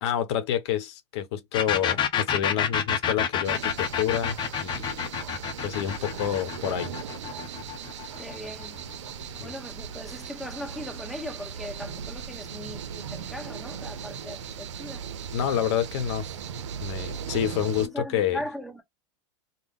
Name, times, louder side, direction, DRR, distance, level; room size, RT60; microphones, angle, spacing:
voice 1, 0.0-5.0 5.6-6.9 9.4-9.5 15.3-16.3 16.8-18.4, left 10 dB, 70° left, 0.8 m, -28 dB
sound 1, 1.5-9.1, left 8 dB, 30° left, 0.7 m, -29 dB
sound 2, 3.4-17.9, right 7 dB, 85° right, 0.5 m, -38 dB
voice 2, 8.2-8.8 9.4-15.0 17.8-18.8, equal, ahead, 1.1 m, -39 dB
3.6 x 2.1 x 3.5 m
hypercardioid pair, 100°, 15 cm